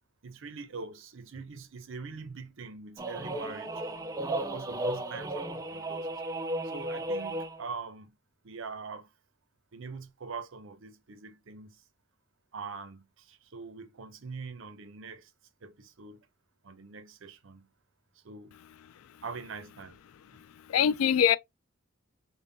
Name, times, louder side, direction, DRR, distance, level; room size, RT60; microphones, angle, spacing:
voice 1, 0.2-3.8 4.4-6.1 6.6-8.2 8.4-9.1 9.7-11.8 12.5-15.3 15.6-16.3 16.6-17.7 18.2-18.6 19.2-20.0, right 4 dB, 65° right, 0.6 m, -43 dB
sound 1, 3.0-7.6, right 1 dB, 15° right, 0.4 m, -34 dB
voice 2, 20.3-21.4, left 8 dB, 85° left, 0.3 m, -24 dB
5.3 x 2.2 x 2.6 m
head